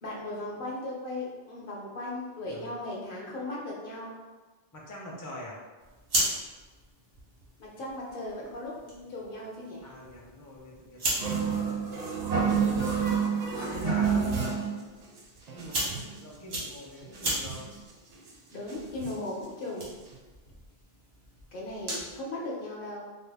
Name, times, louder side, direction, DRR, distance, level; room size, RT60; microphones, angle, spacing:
voice 1, 0.0-4.1 7.6-9.9 18.5-19.9 21.5-23.0, left 2 dB, 60° left, -3 dB, 0.9 m, -37 dB
voice 2, 4.7-5.6 9.8-11.2 13.6-14.5 15.5-17.6, left 1 dB, 25° left, -3 dB, 0.5 m, -44 dB
sound 1, 5.8-22.2, right 1 dB, 90° right, 1.3 m, -38 dB
sound 2, 11.2-14.8 15.2-15.3 15.5-16.2 16.7-16.8 17.0-17.8 18.3-18.4 18.7-19.3 19.8-19.9 20.1-20.2, right 6 dB, 55° right, 0.5 m, -29 dB
3.8 x 2.0 x 3.3 m, 1.3 s
omnidirectional pair, 1.0 m